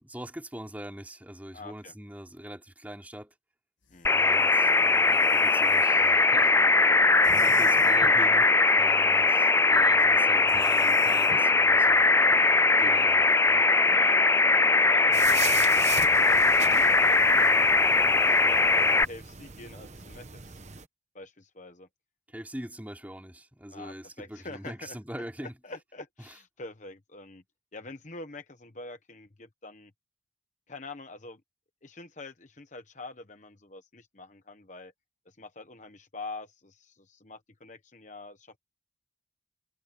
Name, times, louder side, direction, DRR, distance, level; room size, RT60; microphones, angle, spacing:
voice 1, 0.0-3.3 4.1-8.5 8.8-13.7 22.3-25.5 26.2-26.4, equal, 10° right, 3.4 m, -43 dB
voice 2, 1.5-1.9 3.9-4.1 8.6-9.2 13.9-14.3 14.8-17.7 18.0-20.6 21.1-21.9 23.7-25.0 25.4-27.4 27.7-29.9 30.7-31.4 31.8-34.9 35.3-38.6, left 2 dB, 40° left, 1.1 m, -45 dB
sound 1, 3.8-5.9 7.2-8.3 10.5-11.6, left 4 dB, 75° left, 1.7 m, -47 dB
sound 2, 4.0-19.0, left 3 dB, 15° left, 0.3 m, -21 dB
sound 3, 15.1-20.8, right 7 dB, 35° right, 1.1 m, -39 dB
head